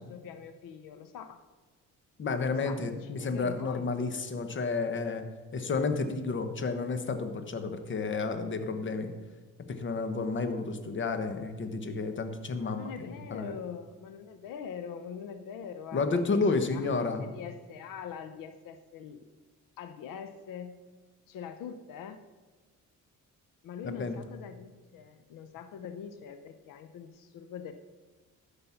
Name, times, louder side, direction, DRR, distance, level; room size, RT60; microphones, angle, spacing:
voice 1, 0.1-1.4 2.6-2.8 3.2-4.1 12.6-16.4 16.7-19.2 19.8-20.8 21.3-22.2 23.6-27.7, left 7 dB, 85° left, 9 dB, 0.7 m, -43 dB
voice 2, 2.2-5.3 5.5-9.1 9.7-13.5 15.9-17.3 23.8-24.2, left 4 dB, 35° left, 8 dB, 1.1 m, -31 dB
13.0 x 5.4 x 5.8 m, 1.4 s
cardioid pair, 115°, 32 cm